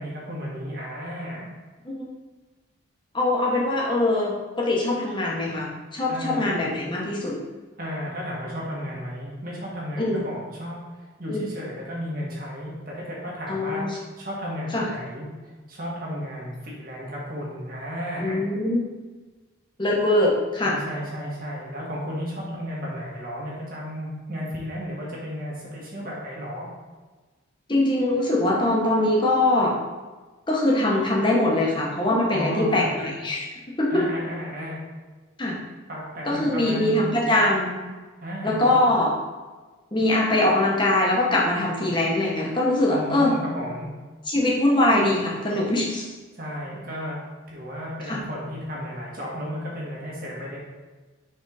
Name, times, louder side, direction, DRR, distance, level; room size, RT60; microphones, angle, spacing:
voice 1, 0.0-1.5 6.1-6.5 7.8-18.4 20.6-26.7 32.3-32.9 33.9-34.8 35.9-37.0 38.2-38.9 42.9-43.9 46.3-47.2 47.5-50.6, equal, 40° right, -4 dB, 1.7 m, -33 dB
voice 2, 3.1-7.4 10.0-10.2 11.3-11.4 13.5-13.9 14.7-14.9 18.2-18.8 19.8-20.8 27.7-29.7 30.5-33.5 33.8-33.9 35.4-35.6 36.2-37.8 38.4-39.1 39.9-43.3 44.3-46.1 48.1-48.2, left 1 dB, 20° left, -4 dB, 1.1 m, -22 dB
4.6 x 4.2 x 4.9 m, 1.3 s
head